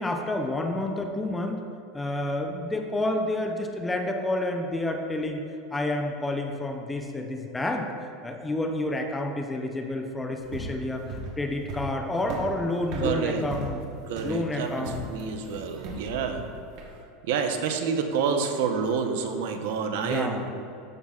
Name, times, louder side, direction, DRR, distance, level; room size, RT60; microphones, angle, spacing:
voice 1, 0.0-1.6 1.9-5.4 5.7-7.9 8.2-13.8 14.2-15.1 16.3-16.5 19.9-20.5, left 1 dB, 10° left, 3 dB, 0.5 m, -29 dB
sound 1, 10.4-17.0, right 2 dB, 50° right, 1.1 m, -37 dB
voice 2, 13.0-13.4 14.0-16.5 17.2-20.4, right 6 dB, 70° right, 5 dB, 0.8 m, -28 dB
13.5 x 5.7 x 2.4 m, 2.7 s
supercardioid pair, 155°, 0 cm